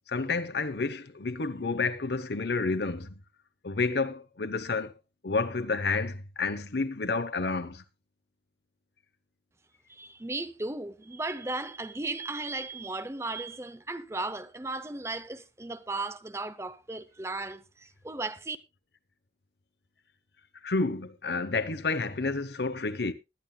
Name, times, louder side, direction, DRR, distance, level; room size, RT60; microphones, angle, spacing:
voice 1, 0.1-3.1 3.6-4.9 5.2-7.8 20.6-23.1, left 3 dB, 70° left, 0.9 m, -30 dB
voice 2, 9.9-18.6, right 2 dB, 15° right, 0.6 m, -36 dB
20.0 x 11.0 x 2.2 m
head